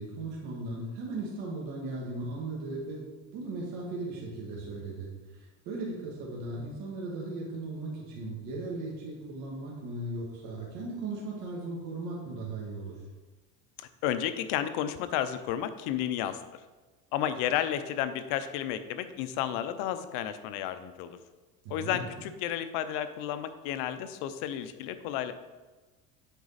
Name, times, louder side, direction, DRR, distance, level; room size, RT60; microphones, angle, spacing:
voice 1, 0.0-3.0 3.3-13.0 21.6-22.0, right 2 dB, 65° right, -4 dB, 1.9 m, -37 dB
voice 2, 13.8-16.4 17.1-21.2 21.7-25.3, left 10 dB, 75° left, 11 dB, 0.7 m, -32 dB
8.2 x 5.0 x 4.1 m, 1.2 s
cardioid pair, 130°, 34 cm